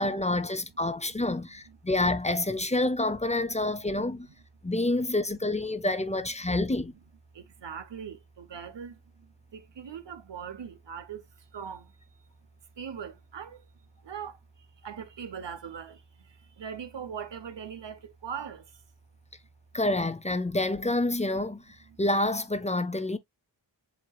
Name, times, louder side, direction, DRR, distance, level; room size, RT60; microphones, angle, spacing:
voice 1, 0.0-4.3 4.6-6.9 19.7-23.2, left 2 dB, 15° left, 0.6 m, -28 dB
voice 2, 1.3-1.8 3.8-3.9 5.0-5.1 6.4-6.5 7.3-11.9 12.8-13.7 14.0-18.8 21.9-22.0, right 7 dB, 75° right, 1.0 m, -41 dB
7.5 x 2.8 x 2.3 m
wide cardioid pair, 60°, 43 cm